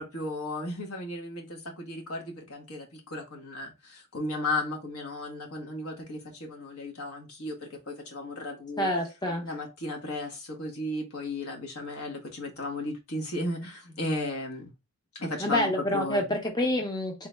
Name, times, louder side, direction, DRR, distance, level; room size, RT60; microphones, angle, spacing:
voice 1, 0.0-8.9 9.4-14.7 15.1-16.4, left 2 dB, 80° left, 1.5 m, -35 dB
voice 2, 8.8-9.5 15.4-17.3, left 1 dB, 20° left, 0.7 m, -27 dB
3.9 x 3.3 x 3.4 m
head